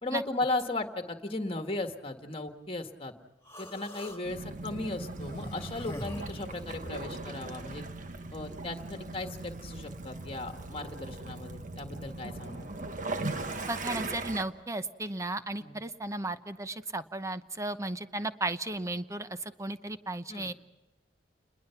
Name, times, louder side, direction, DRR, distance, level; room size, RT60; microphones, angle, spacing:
voice 1, 0.0-3.1 3.6-7.8 8.3-12.7 15.6-15.8 20.3-20.5, left 2 dB, 30° left, 6 dB, 1.8 m, -36 dB
Human voice, 3.5-4.2 5.1-7.1, left 1 dB, 15° left, 3.1 m, -43 dB
Waves surf / Splash splatter / Trickle dribble, 4.2-14.4, right 2 dB, 45° right, 1.4 m, -39 dB
voice 2, 13.6-20.5, right 2 dB, 15° right, 11 dB, 0.9 m, -35 dB
29.0 x 21.0 x 5.9 m, 1.1 s
head